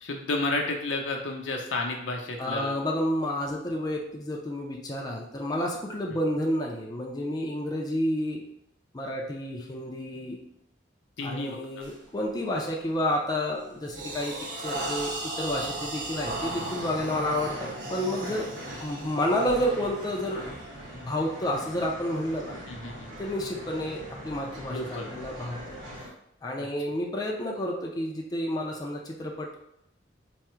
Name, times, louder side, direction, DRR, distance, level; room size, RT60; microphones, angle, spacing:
voice 1, 0.0-2.7 11.2-11.8 22.7-23.1 24.7-25.1 26.6-26.7, left 2 dB, 80° left, 1 dB, 0.6 m, -31 dB
voice 2, 2.4-8.4 8.9-10.4 11.2-18.5 18.8-20.4 20.9-22.6 23.2-25.8 26.4-29.7, left 1 dB, 20° left, -1 dB, 0.4 m, -30 dB
sound 1, 11.8-12.0 12.5-12.8 13.3-21.4, right 2 dB, 45° right, 0.7 m, -37 dB
sound 2, 16.2-26.1, equal, 85° right, 1.0 m, -41 dB
3.5 x 2.0 x 4.3 m, 0.79 s
head